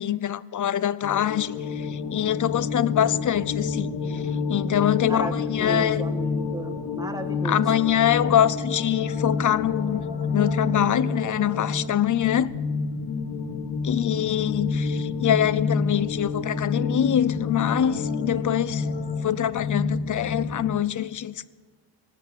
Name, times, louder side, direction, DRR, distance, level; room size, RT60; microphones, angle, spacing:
voice 1, 0.0-4.2 4.5-6.0 7.4-10.0 10.3-12.5 13.8-18.9 19.2-21.5, left 10 dB, 50° left, 0.5 m, -24 dB
sound 1, 1.0-20.7, left 4 dB, 70° left, 1.7 m, -29 dB
voice 2, 5.1-7.6, right 2 dB, 10° right, 1.5 m, -34 dB
18.5 x 7.0 x 8.8 m
cardioid pair, 80°, 40 cm